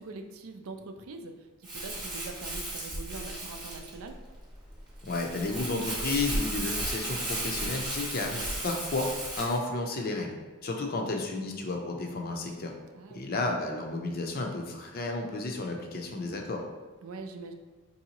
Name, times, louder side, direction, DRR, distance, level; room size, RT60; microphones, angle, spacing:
voice 1, 0.0-4.1 12.9-13.5 17.0-17.5, right 3 dB, 70° right, 6 dB, 0.4 m, -43 dB
Crumpling crinkling, 1.6-9.6, right 1 dB, 20° right, 0.9 m, -35 dB
voice 2, 5.1-10.4 10.6-12.7 13.1-16.6, left 2 dB, 45° left, 2 dB, 0.5 m, -32 dB
4.7 x 2.7 x 2.9 m, 1.3 s
head